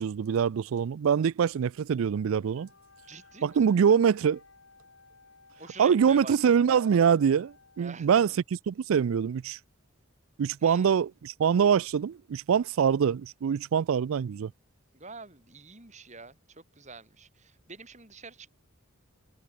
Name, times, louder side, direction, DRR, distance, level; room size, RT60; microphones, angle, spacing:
voice 1, 0.0-2.7 3.4-4.4 5.8-8.3 8.7-9.6 10.4-14.5, right 7 dB, 75° right, 0.4 m, -24 dB
Wind instrument woodwind instrument, 2.5-8.4, left 3 dB, 65° left, 4.9 m, -58 dB
voice 2, 3.1-3.6 5.6-6.5 7.8-8.4 10.6-11.0 14.9-18.5, right 4 dB, 35° right, 4.3 m, -46 dB
head